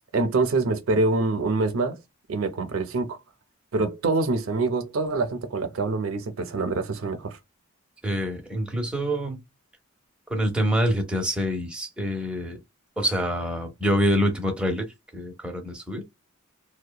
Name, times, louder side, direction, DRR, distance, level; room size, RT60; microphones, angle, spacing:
voice 1, 0.1-2.0 2.3-3.2 3.7-7.4, right 3 dB, 80° right, 0.5 m, -25 dB
voice 2, 8.0-9.4 10.3-12.6 13.0-14.9 15.1-16.0, equal, 5° right, 0.7 m, -26 dB
2.8 x 2.1 x 2.2 m
head